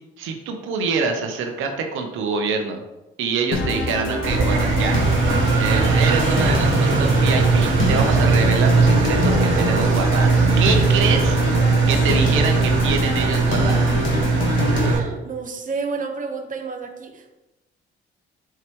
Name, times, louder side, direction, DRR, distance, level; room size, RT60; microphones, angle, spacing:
voice 1, 0.2-2.8 3.2-5.0 5.6-11.4 11.9-13.8, right 5 dB, 90° right, 4 dB, 0.8 m, -25 dB
sound 1, 3.5-14.9, left 3 dB, 80° left, 1.4 m, -26 dB
Engine, 4.2-15.0, right 4 dB, 70° right, 1.2 m, -19 dB
voice 2, 14.7-17.3, right 4 dB, 40° right, 4 dB, 1.0 m, -30 dB
7.6 x 4.8 x 3.1 m, 1.0 s
cardioid pair, 90°, 20 cm